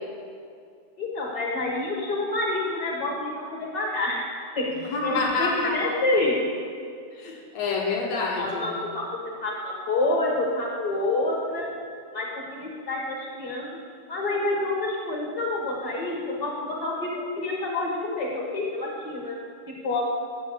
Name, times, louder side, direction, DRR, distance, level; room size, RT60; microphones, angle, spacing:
voice 1, 1.0-4.3 4.5-4.7 5.0-6.4 8.4-9.0 9.4-11.7 12.1-13.7 14.1-19.3 19.7-20.0, left 2 dB, 40° left, -3 dB, 1.4 m, -28 dB
voice 2, 4.8-5.9 7.1-8.7, left 3 dB, 60° left, 0 dB, 2.3 m, -27 dB
8.1 x 7.2 x 7.7 m, 2.3 s
omnidirectional pair, 3.6 m